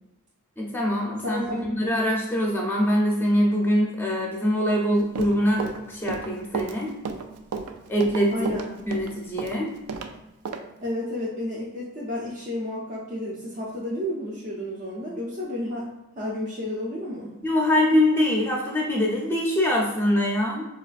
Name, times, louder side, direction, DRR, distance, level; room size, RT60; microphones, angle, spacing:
voice 1, 0.6-6.9 7.9-8.3 8.9-9.7 17.4-20.7, left 1 dB, 10° left, -2 dB, 0.6 m, -23 dB
voice 2, 1.2-1.6 8.3-8.8 10.8-15.9 16.2-17.3, left 1 dB, 35° right, -7 dB, 0.6 m, -31 dB
Run, 5.0-10.1 10.5-10.6, right 5 dB, 85° right, 0.4 m, -32 dB
4.7 x 2.3 x 2.4 m, 0.98 s
head